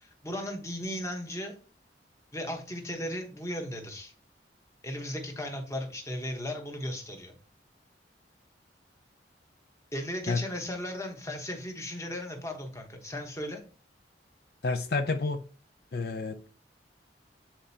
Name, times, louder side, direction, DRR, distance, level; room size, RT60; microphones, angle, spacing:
voice 1, 0.0-1.6 2.3-4.1 4.8-7.3 9.9-13.6, left 1 dB, 15° left, 1.1 m, -36 dB
voice 2, 14.6-15.4 15.9-16.4, left 3 dB, 60° left, 0.5 m, -29 dB
8.8 x 4.3 x 2.8 m
head